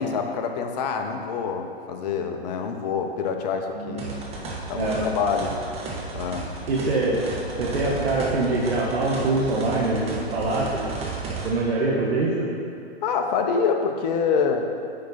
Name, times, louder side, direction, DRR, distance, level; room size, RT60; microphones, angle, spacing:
voice 1, 0.0-4.1 4.7-5.6 6.1-6.5 13.0-14.7, left 6 dB, 40° left, 4 dB, 0.7 m, -26 dB
voice 2, 3.7-4.5 4.7-5.0 6.7-7.2 7.6-10.9 11.4-12.5, right 2 dB, 65° right, -4 dB, 1.2 m, -24 dB
sound 1, 4.0-11.5, right 3 dB, 20° right, 1.1 m, -34 dB
9.6 x 4.4 x 4.1 m, 2.4 s
hypercardioid pair, 125°, 33 cm